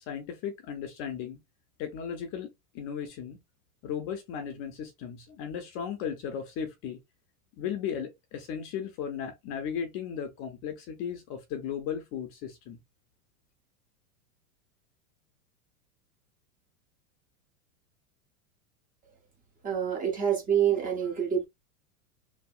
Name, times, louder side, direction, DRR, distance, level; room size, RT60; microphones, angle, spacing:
voice 1, 0.0-1.4 1.8-3.4 3.8-7.0 7.6-12.8, left 8 dB, 30° left, 0.5 m, -36 dB
voice 2, 19.6-21.5, right 8 dB, 20° right, 0.6 m, -26 dB
2.7 x 2.6 x 2.3 m
supercardioid pair, 135°, 45 cm